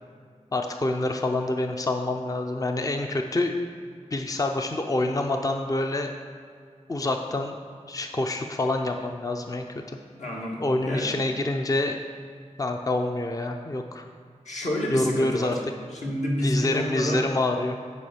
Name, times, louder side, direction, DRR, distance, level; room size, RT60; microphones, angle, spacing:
voice 1, 0.5-3.5 4.1-6.1 6.9-7.6 7.9-10.0 10.6-12.0 12.6-14.0 14.9-15.5 16.4-17.8, left 2 dB, 25° left, 4 dB, 0.5 m, -27 dB
voice 2, 10.2-11.2 14.4-15.6 15.9-17.3, equal, 70° left, -3 dB, 1.8 m, -29 dB
9.5 x 4.7 x 5.8 m, 2.1 s
wide cardioid pair, 75°, 13 cm